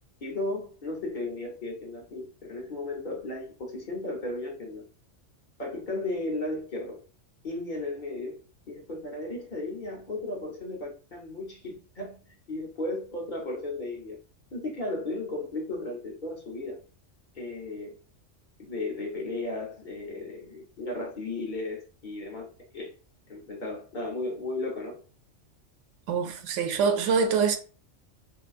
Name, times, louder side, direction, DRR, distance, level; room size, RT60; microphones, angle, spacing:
voice 1, 0.2-4.8 5.6-7.0 7.4-14.2 14.5-16.8 17.3-18.0 18.6-22.5 22.7-22.9 23.3-25.0, left 2 dB, 45° left, 1.0 m, -35 dB
voice 2, 26.1-27.6, right 5 dB, 80° right, 0.9 m, -24 dB
3.4 x 2.7 x 2.4 m
omnidirectional pair, 1.2 m